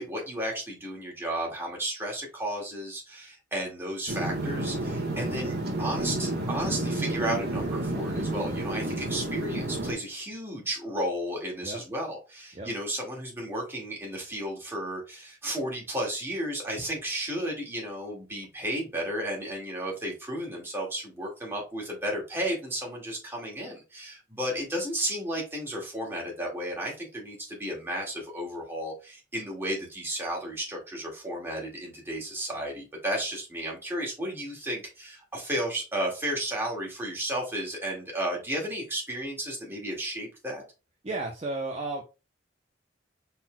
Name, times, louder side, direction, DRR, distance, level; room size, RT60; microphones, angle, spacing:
voice 1, 0.0-40.6, right 1 dB, 15° right, -2 dB, 1.9 m, -33 dB
sound 1, 4.1-9.9, right 1 dB, 55° right, 1.3 m, -30 dB
voice 2, 41.0-42.0, right 2 dB, 35° right, 0 dB, 0.7 m, -33 dB
5.7 x 4.2 x 2.2 m, 0.29 s
head